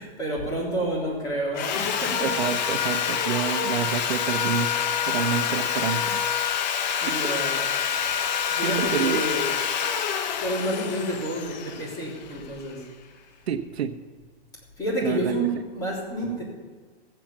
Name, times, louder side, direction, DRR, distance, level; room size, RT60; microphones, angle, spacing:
voice 1, 0.0-2.3 7.0-7.6 8.0-8.1 8.5-9.5 10.4-12.9 14.8-16.4, right 1 dB, 10° left, -5 dB, 3.7 m, -29 dB
Sawing, 1.6-12.6, left 8 dB, 45° left, 0.9 m, -27 dB
voice 2, 2.2-6.2 7.1-7.3 8.6-9.2 13.5-13.9 15.0-15.3, right 8 dB, 85° right, 8 dB, 1.1 m, -28 dB
15.0 x 8.1 x 7.4 m, 1.5 s
hypercardioid pair, 165°, 31 cm